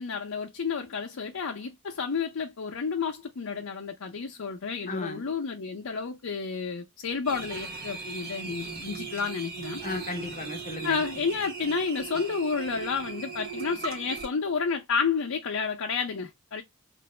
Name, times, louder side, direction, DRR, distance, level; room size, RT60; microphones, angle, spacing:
voice 1, 0.0-9.8 10.8-16.6, left 5 dB, 80° left, 0.6 m, -31 dB
voice 2, 4.9-5.2 9.8-11.0, left 3 dB, 35° left, 0.7 m, -35 dB
sound 1, 7.2-14.3, right 5 dB, 50° right, 1.1 m, -38 dB
3.0 x 2.6 x 3.1 m
head